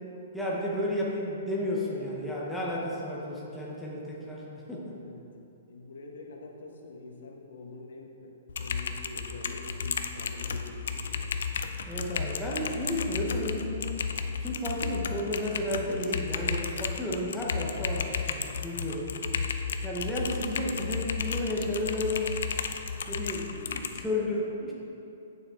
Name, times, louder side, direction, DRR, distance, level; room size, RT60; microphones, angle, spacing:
voice 1, 0.3-5.0 11.9-13.9 14.4-19.1 19.8-22.3 23.1-24.7, left 1 dB, ahead, -6 dB, 0.7 m, -32 dB
voice 2, 5.0-5.3 5.7-11.3 24.0-24.3, left 3 dB, 80° left, 1 dB, 1.1 m, -46 dB
Typing, 8.5-24.0, left 6 dB, 65° left, 0.4 m, -33 dB
8.2 x 6.9 x 3.5 m, 2.8 s
hypercardioid pair, 180°, 0 cm